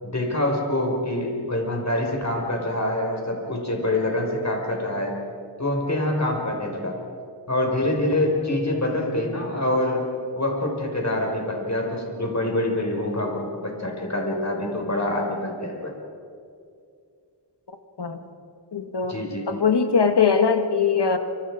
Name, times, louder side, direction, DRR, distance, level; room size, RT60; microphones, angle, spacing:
voice 1, 0.0-5.2 5.6-7.0 7.5-10.1 10.4-15.9 19.1-19.5, left 1 dB, 40° left, 1 dB, 5.3 m, -25 dB
voice 2, 18.7-19.2 19.5-21.2, left 6 dB, 70° left, 7 dB, 1.8 m, -21 dB
28.0 x 26.0 x 5.0 m, 2.4 s
wide cardioid pair, 50°, 42 cm